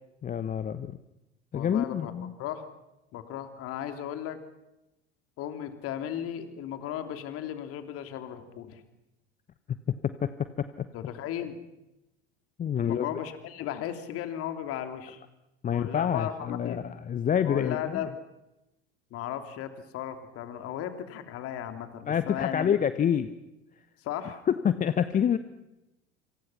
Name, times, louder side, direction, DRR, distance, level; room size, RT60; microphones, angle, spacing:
voice 1, 0.2-1.0 1.5-2.3 9.7-9.8 10.0-10.9 12.6-13.1 15.6-18.1 22.1-23.3 24.5-25.4, left 8 dB, 25° left, 13 dB, 1.0 m, -27 dB
voice 2, 1.5-2.1 2.4-2.6 3.1-4.4 5.4-8.8 10.9-11.6 12.8-15.2 15.7-16.8 17.4-18.1 19.1-22.7 24.0-24.4, left 10 dB, 45° left, 8 dB, 3.0 m, -36 dB
27.5 x 27.0 x 5.9 m, 0.95 s
figure-of-eight pair, 75°, 33 cm